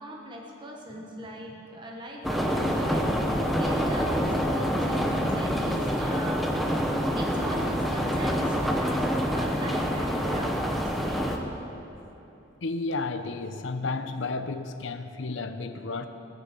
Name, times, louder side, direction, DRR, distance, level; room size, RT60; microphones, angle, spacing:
voice 1, 0.0-6.5 7.1-11.3, equal, 25° right, 0 dB, 1.1 m, -40 dB
sound 1, 2.2-11.4, equal, ahead, 0.8 m, -26 dB
voice 2, 12.6-16.1, left 3 dB, 65° left, 10 dB, 0.7 m, -32 dB
17.0 x 6.9 x 7.5 m, 3.0 s
head